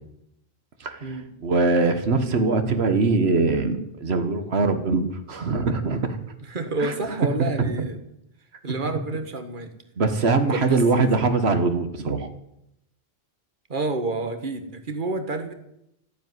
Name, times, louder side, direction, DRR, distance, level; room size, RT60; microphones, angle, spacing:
voice 1, 0.8-1.1 1.4-6.2 6.8-6.9 7.4-7.9 10.0-12.3, right 3 dB, 90° right, 8 dB, 1.6 m, -22 dB
voice 2, 6.5-8.0 8.6-9.7 10.5-11.0 13.7-15.5, right 3 dB, 55° right, 8 dB, 1.8 m, -29 dB
14.5 x 9.8 x 9.6 m, 0.82 s
omnidirectional pair, 1.0 m